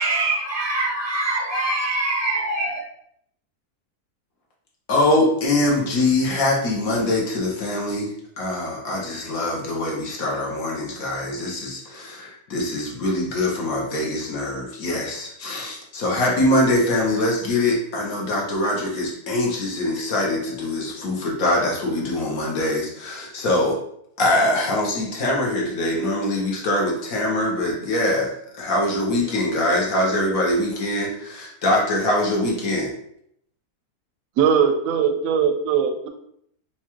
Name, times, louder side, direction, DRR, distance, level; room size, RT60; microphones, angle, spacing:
voice 1, 0.0-2.8, right 2 dB, 30° left, 0.7 m, -24 dB
voice 2, 4.9-23.8 24.2-32.9, left 1 dB, 70° left, 1.2 m, -23 dB
voice 3, 34.4-36.1, right 7 dB, 70° right, 0.9 m, -20 dB
4.5 x 2.3 x 2.9 m
omnidirectional pair, 1.6 m